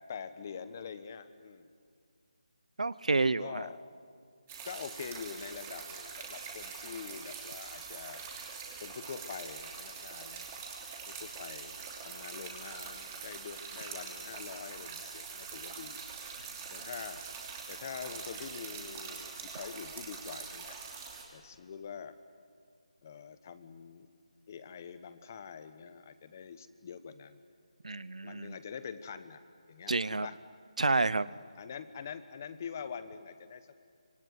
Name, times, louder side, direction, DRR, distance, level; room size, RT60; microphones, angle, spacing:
voice 1, 0.0-1.7 3.2-3.8 4.6-8.2 8.8-10.5 11.1-11.8 12.0-16.0 16.7-17.2 17.7-20.8 21.3-22.2 23.0-24.1 24.5-27.4 28.2-29.4 29.7-30.4 31.3-33.7, left 6 dB, 25° left, 12 dB, 1.1 m, -45 dB
voice 2, 2.8-3.6 16.8-16.9 27.8-28.6 29.9-30.3 30.8-31.3, right 3 dB, 80° right, 19 dB, 0.8 m, -29 dB
sound 1, 4.5-21.2, right 5 dB, 15° right, 2.9 m, -44 dB
25.5 x 24.0 x 9.7 m, 2.2 s
figure-of-eight pair, 170°, 4 cm